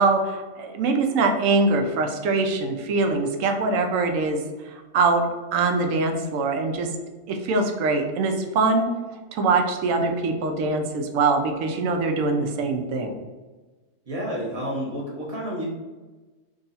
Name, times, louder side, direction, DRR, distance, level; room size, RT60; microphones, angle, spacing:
voice 1, 0.0-4.4 4.9-5.2 5.5-6.9 7.3-8.9 9.3-13.1, right 3 dB, 90° right, 5 dB, 1.0 m, -23 dB
voice 2, 14.1-15.7, equal, 30° right, -3 dB, 0.9 m, -30 dB
3.8 x 2.3 x 4.0 m, 1.2 s
omnidirectional pair, 1.3 m